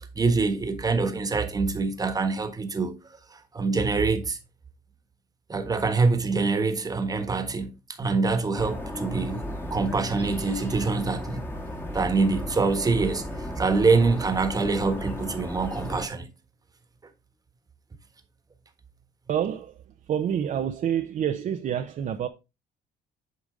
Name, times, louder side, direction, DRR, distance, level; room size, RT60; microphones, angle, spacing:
voice 1, 0.1-3.0 3.5-4.4 5.5-7.7 8.0-9.4 9.7-11.4 11.9-13.2 13.6-16.3, right 4 dB, 20° right, 1.4 m, -25 dB
sound 1, 8.5-16.1, left 1 dB, 10° left, 1.5 m, -35 dB
voice 2, 19.3-19.8 20.1-22.3, right 9 dB, 50° right, 0.7 m, -27 dB
8.3 x 5.2 x 3.7 m
cardioid pair, 110°, 17 cm